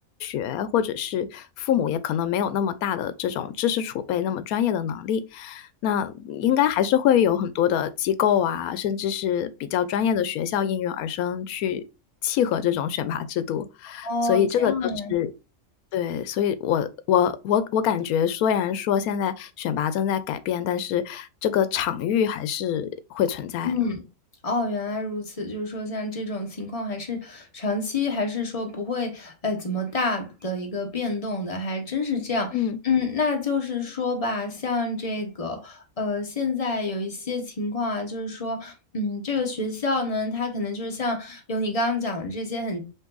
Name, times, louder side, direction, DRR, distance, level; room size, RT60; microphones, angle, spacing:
voice 1, 0.2-11.8 12.2-15.3 15.9-23.7 32.5-32.8, left 9 dB, 85° left, 1.1 m, -25 dB
voice 2, 14.0-15.1 23.6-24.0 24.4-32.6 32.8-42.8, left 3 dB, 25° left, 1.1 m, -28 dB
5.3 x 2.6 x 3.8 m
omnidirectional pair, 1.5 m